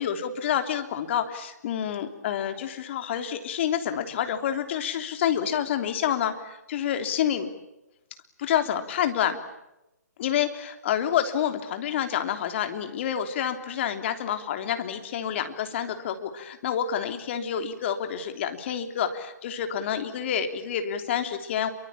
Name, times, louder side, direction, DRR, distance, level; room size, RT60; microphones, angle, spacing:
voice 1, 0.0-7.5 8.4-9.4 10.2-21.7, left 9 dB, 40° left, 7 dB, 3.3 m, -28 dB
28.0 x 24.5 x 8.7 m, 0.92 s
figure-of-eight pair, 140°, 10 cm